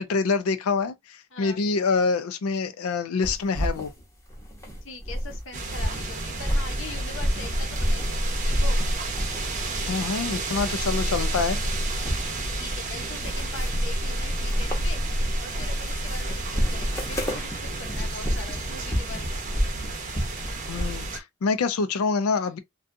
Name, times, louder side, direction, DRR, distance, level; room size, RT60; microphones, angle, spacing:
voice 1, 0.0-3.9 9.9-11.6 20.7-22.6, left 4 dB, 90° left, 0.4 m, -26 dB
voice 2, 1.3-1.6 4.8-8.8 12.6-19.4 22.3-22.5, left 3 dB, 60° left, 0.8 m, -42 dB
sound 1, 3.2-5.4 5.7-8.2 8.5-9.5 9.8-11.0 11.2-21.0, equal, 15° left, 0.7 m, -31 dB
sound 2, 5.5-21.2, right 1 dB, 35° right, 0.6 m, -29 dB
2.5 x 2.3 x 2.5 m
head